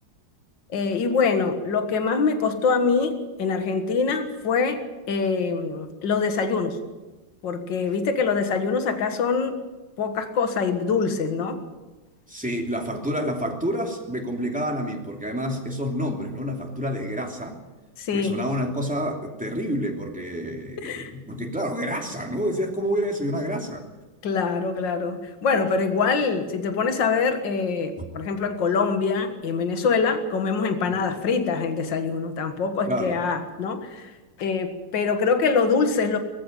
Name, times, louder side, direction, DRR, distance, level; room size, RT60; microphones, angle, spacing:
voice 1, 0.7-6.8 7.4-9.6 10.0-11.6 18.0-18.4 20.8-21.1 24.2-34.1 34.4-36.2, left 5 dB, 60° left, 7 dB, 2.2 m, -24 dB
voice 2, 12.3-17.6 18.1-23.8 28.0-28.1 30.9-31.0 32.8-33.2, equal, 5° right, 1 dB, 2.7 m, -28 dB
20.0 x 14.5 x 9.2 m, 1.2 s
omnidirectional pair, 2.3 m